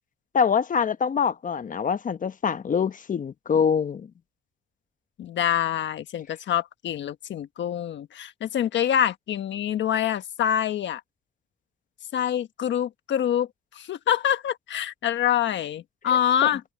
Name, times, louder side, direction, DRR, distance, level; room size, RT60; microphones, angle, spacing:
voice 1, 0.3-4.1 16.1-16.2, left 6 dB, 40° left, 1.0 m, -24 dB
voice 2, 5.2-11.0 12.1-16.6, left 10 dB, 70° left, 1.4 m, -26 dB
cardioid pair, 90°, 20 cm